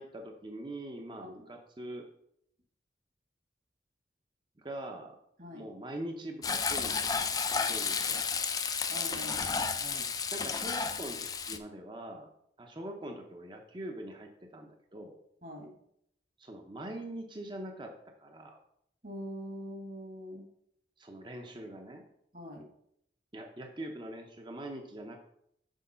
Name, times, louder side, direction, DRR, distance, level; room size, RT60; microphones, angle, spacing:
voice 1, 0.0-2.1 4.6-5.2 5.5-7.3 7.6-8.4 10.3-12.3 12.6-15.2 16.4-17.9 18.2-18.6 21.0-22.0 23.3-25.3, right 1 dB, 25° right, 4 dB, 0.6 m, -43 dB
Frying (food), 6.4-11.6, left 5 dB, 20° left, 0.4 m, -32 dB
voice 2, 8.9-10.1 15.4-15.7 19.0-20.5 22.3-22.7, equal, 50° right, 3 dB, 1.5 m, -44 dB
6.3 x 4.7 x 5.5 m, 0.73 s
head